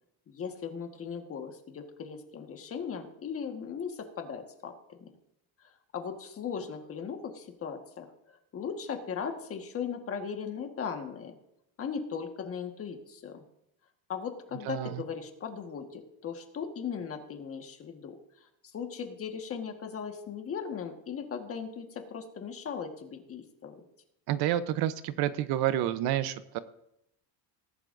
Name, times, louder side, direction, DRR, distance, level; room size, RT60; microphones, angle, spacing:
voice 1, 0.3-5.1 5.9-11.4 11.8-13.4 14.1-18.1 18.7-23.8, left 6 dB, 35° left, 4 dB, 1.5 m, -38 dB
voice 2, 14.6-15.0 24.3-26.6, right 12 dB, 65° right, 13 dB, 0.8 m, -29 dB
18.5 x 11.0 x 2.6 m, 0.81 s
cardioid pair, 145°, 41 cm